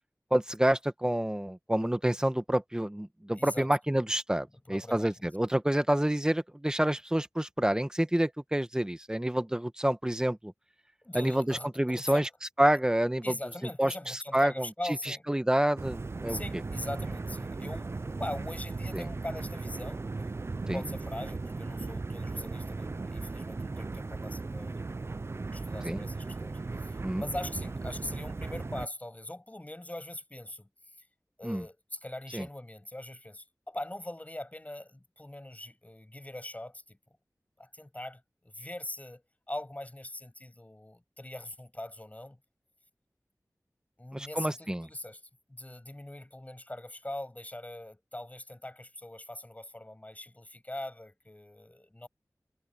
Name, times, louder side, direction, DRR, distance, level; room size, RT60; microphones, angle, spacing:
voice 1, 0.3-10.5 11.1-12.3 12.6-13.4 13.8-14.7 15.1-16.4 18.9-19.1 20.7-20.8 25.8-26.0 27.0-27.2 31.4-31.6 32.3-32.5 44.1-44.9, right 1 dB, 10° right, 1.2 m, -28 dB
voice 2, 3.4-3.7 4.7-5.1 11.0-12.3 13.2-15.2 16.3-20.0 20.7-25.0 25.5-30.7 31.4-37.0 37.6-39.2 39.5-42.4 44.0-45.2 45.5-52.1, left 1 dB, 25° left, 6.7 m, -41 dB
sound 1, 15.8-28.9, right 3 dB, 45° right, 0.4 m, -37 dB
wide cardioid pair, 70°, 6 cm